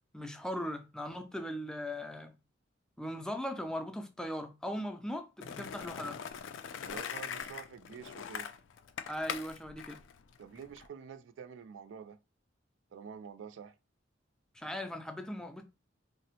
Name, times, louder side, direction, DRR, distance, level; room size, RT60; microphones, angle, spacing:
voice 1, 0.1-2.4 3.0-6.2 9.1-10.0 14.5-15.6, equal, 5° left, 0.3 m, -39 dB
Skateboard, 5.4-10.9, left 7 dB, 85° left, 0.4 m, -42 dB
voice 2, 6.8-8.5 10.4-12.2 12.9-13.7, right 7 dB, 80° right, 0.3 m, -47 dB
3.6 x 2.0 x 2.8 m
head